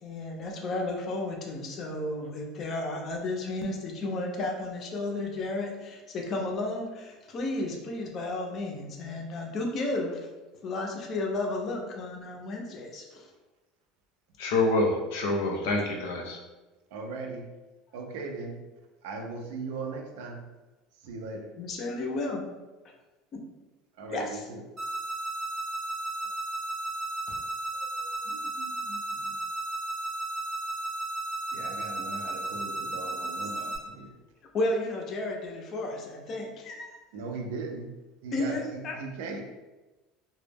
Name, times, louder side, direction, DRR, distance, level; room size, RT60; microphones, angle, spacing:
voice 1, 0.0-10.2 10.6-13.3 21.6-22.4 23.3-23.4 24.1-24.4 34.5-37.0 38.3-39.0, left 2 dB, 30° left, 1 dB, 0.4 m, -33 dB
voice 2, 14.4-16.4, left 2 dB, 80° left, 1 dB, 0.5 m, -26 dB
voice 3, 16.9-17.5 17.9-18.6 19.0-20.4 21.0-21.5 24.0-24.6 27.3-27.4 27.7-29.3 31.5-34.1 37.1-37.9 38.2-39.6, right 3 dB, 85° right, 3 dB, 0.4 m, -39 dB
sound 1, 24.8-33.8, right 2 dB, 20° right, 0.7 m, -34 dB
2.1 x 2.0 x 3.3 m, 1.1 s
cardioid pair, 170°, 0 cm